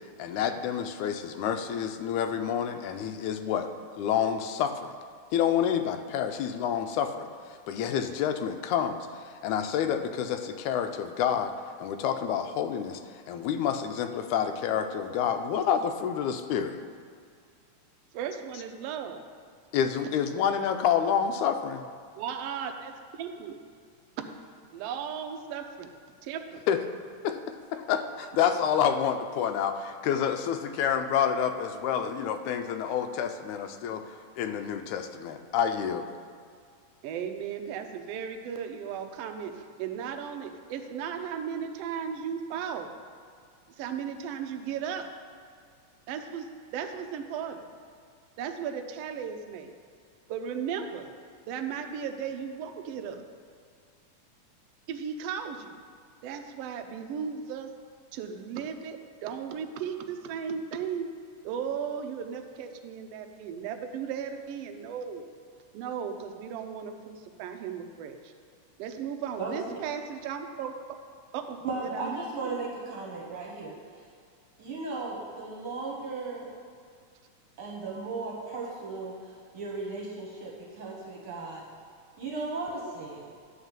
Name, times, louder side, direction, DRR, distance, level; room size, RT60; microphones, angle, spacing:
voice 1, 0.2-3.7 4.0-5.0 5.3-7.3 7.7-13.0 13.3-16.8 19.7-21.8 26.7-26.8 27.2-36.1, left 8 dB, 80° left, 7 dB, 2.0 m, -28 dB
voice 2, 18.1-19.2 22.2-22.9 23.2-23.5 24.7-25.9 26.2-26.6 37.0-42.9 43.8-45.1 46.1-47.6 48.4-49.7 50.3-51.1 51.5-53.2 54.9-55.8 56.2-57.7 58.1-61.1 61.4-65.2 65.7-68.3 68.8-70.7 71.3-72.6, right 7 dB, 80° right, 5 dB, 1.4 m, -36 dB
voice 3, 71.6-73.8 74.6-76.5 77.6-81.6 82.2-83.3, right 3 dB, 55° right, -3 dB, 1.6 m, -36 dB
10.5 x 3.6 x 7.3 m, 2.2 s
omnidirectional pair, 3.5 m